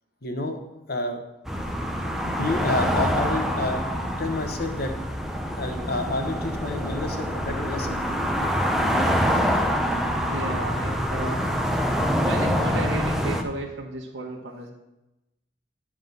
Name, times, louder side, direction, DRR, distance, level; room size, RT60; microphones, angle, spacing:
voice 1, 0.2-0.6 0.9-1.2 2.2-4.9 5.6-8.0, left 2 dB, 55° left, 5 dB, 1.0 m, -29 dB
sound 1, 1.5-13.4, equal, ahead, 0.6 m, -25 dB
voice 2, 10.3-11.4 12.3-14.7, right 1 dB, 85° right, -1 dB, 1.3 m, -33 dB
9.4 x 3.7 x 6.5 m, 0.97 s
head